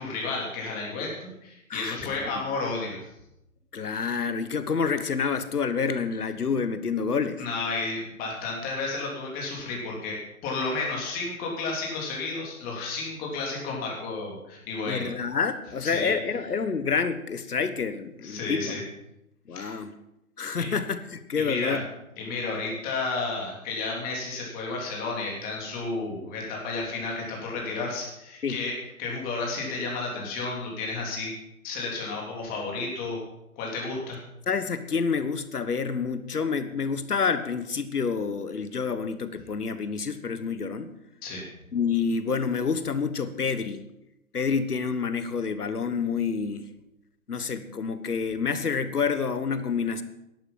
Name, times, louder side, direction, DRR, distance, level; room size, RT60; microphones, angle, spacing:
voice 1, 0.0-3.1 7.4-10.2 10.4-15.1 15.8-16.1 18.2-18.8 19.5-19.8 20.6-20.7 21.4-21.8 22.2-28.7 29.0-31.3 31.6-33.2 33.6-34.2 41.2-41.5, left 3 dB, 20° left, -2 dB, 3.4 m, -32 dB
voice 2, 1.7-2.4 3.7-7.4 14.8-18.8 19.5-20.0 20.4-21.8 28.4-28.6 34.5-40.9 41.7-43.8 44.3-46.7 47.3-50.0, left 5 dB, 85° left, 12 dB, 1.4 m, -28 dB
12.5 x 11.5 x 5.6 m, 0.86 s
hypercardioid pair, 145°, 44 cm